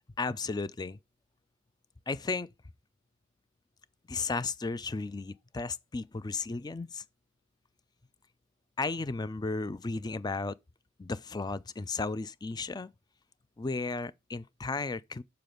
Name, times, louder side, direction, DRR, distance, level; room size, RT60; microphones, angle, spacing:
voice 1, 0.2-1.0 2.1-2.5 4.1-7.0 8.8-10.6 11.0-12.9 13.6-15.2, left 3 dB, 20° left, 0.4 m, -34 dB
6.8 x 6.7 x 3.9 m
head